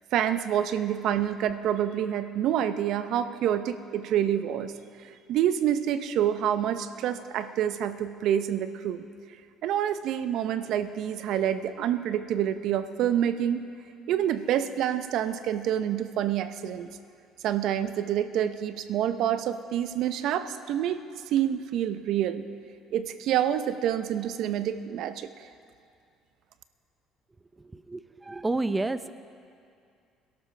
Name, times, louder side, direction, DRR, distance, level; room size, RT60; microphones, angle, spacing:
voice 1, 0.1-4.7 5.3-9.0 9.6-13.7 14.1-16.9 17.4-21.0 21.3-22.4 22.9-25.3, right 10 dB, 65° right, 11 dB, 0.7 m, -27 dB
voice 2, 27.6-29.1, right 2 dB, 20° right, 12 dB, 0.7 m, -30 dB
22.5 x 12.0 x 3.4 m, 2.4 s
hypercardioid pair, 65°, 0 cm